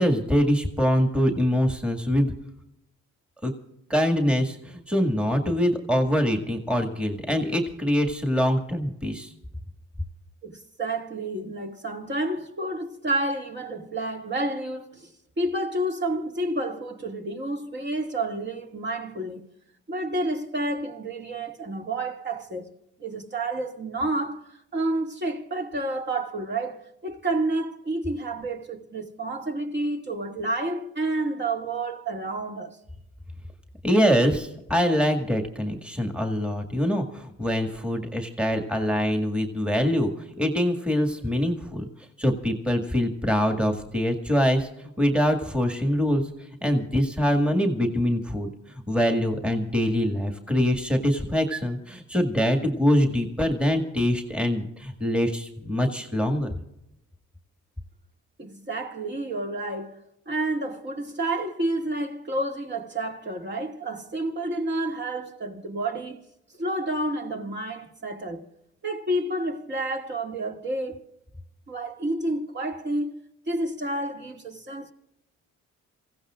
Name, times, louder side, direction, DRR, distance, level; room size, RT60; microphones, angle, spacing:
voice 1, 0.0-2.3 3.4-3.5 3.9-9.3 33.8-41.9 42.2-48.5 48.9-56.5, equal, 5° right, 1.9 m, -24 dB
voice 2, 10.4-15.1 15.4-19.4 19.9-22.7 23.0-32.8 58.4-60.0 60.3-66.2 66.6-68.4 68.8-71.0 71.7-74.9, right 2 dB, 35° right, 2.3 m, -30 dB
27.5 x 16.0 x 2.5 m
cardioid pair, 90°, 30 cm